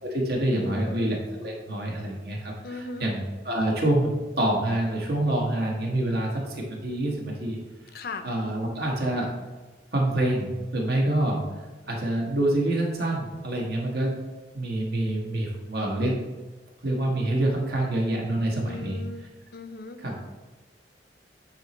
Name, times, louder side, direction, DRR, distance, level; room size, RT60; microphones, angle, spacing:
voice 1, 0.0-4.1 4.4-7.6 8.2-9.3 9.9-11.4 11.9-14.1 14.5-16.1 16.8-19.0 20.0-20.2, right 1 dB, 60° right, -1 dB, 1.4 m, -26 dB
voice 2, 0.6-1.2 2.6-3.1 7.9-8.3 18.7-19.3 19.5-20.0, left 3 dB, 60° left, 8 dB, 0.5 m, -37 dB
8.9 x 3.0 x 4.4 m, 1.2 s
head